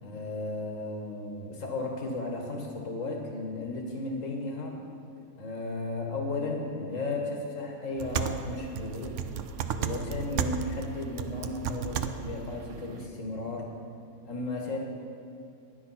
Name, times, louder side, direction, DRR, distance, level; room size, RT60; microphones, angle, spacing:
voice 1, 0.0-4.8 5.4-9.2 9.7-13.7 14.3-14.8, left 2 dB, 60° left, 1 dB, 2.0 m, -34 dB
sound 1, 8.0-13.1, right 7 dB, 65° right, 0.8 m, -34 dB
10.5 x 10.5 x 5.7 m, 2.6 s
omnidirectional pair, 1.6 m